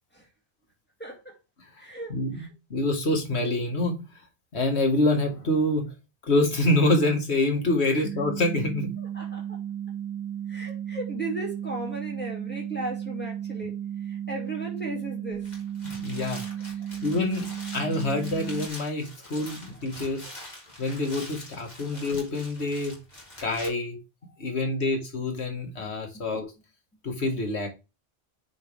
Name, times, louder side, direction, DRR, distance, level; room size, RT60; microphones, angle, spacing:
voice 1, 1.0-1.4 1.8-2.5 7.9-8.0 9.0-9.6 10.5-13.7 14.0-15.4 16.8-17.0 19.5-19.8 24.3-24.6 26.1-26.2, right 2 dB, 10° left, 2.5 m, -37 dB
voice 2, 2.1-4.0 4.5-5.9 6.3-9.0 15.8-16.5 17.0-20.3 20.8-23.0 23.4-24.0 24.4-26.5 27.0-27.7, left 2 dB, 80° left, 2.0 m, -26 dB
sound 1, 8.0-18.7, right 10 dB, 25° right, 0.5 m, -34 dB
sound 2, 15.3-23.7, left 1 dB, 40° left, 3.0 m, -44 dB
9.2 x 4.4 x 3.5 m
omnidirectional pair, 1.1 m